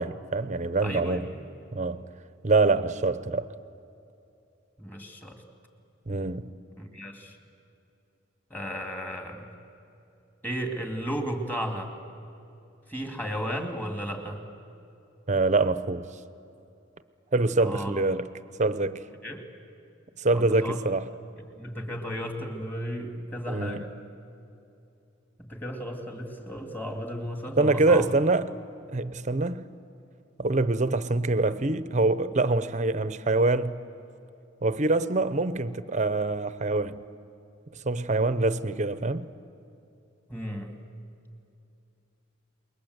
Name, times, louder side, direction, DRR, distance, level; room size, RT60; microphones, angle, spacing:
voice 1, 0.0-1.3 1.7-2.1 2.4-3.5 6.1-6.5 15.3-16.1 17.3-18.3 18.6-19.0 20.2-21.1 23.5-23.8 27.6-28.5 28.9-29.7 30.4-33.8 34.6-37.0 37.8-39.3, right 3 dB, 35° right, 0.8 m, -25 dB
voice 2, 0.8-1.4 4.8-5.4 6.8-7.4 8.5-9.5 10.4-11.9 12.9-14.4 17.6-18.0 19.2-19.4 20.3-20.8 21.6-23.9 25.4-28.1 40.3-40.7, equal, 10° left, 2.4 m, -34 dB
28.5 x 22.5 x 8.0 m
head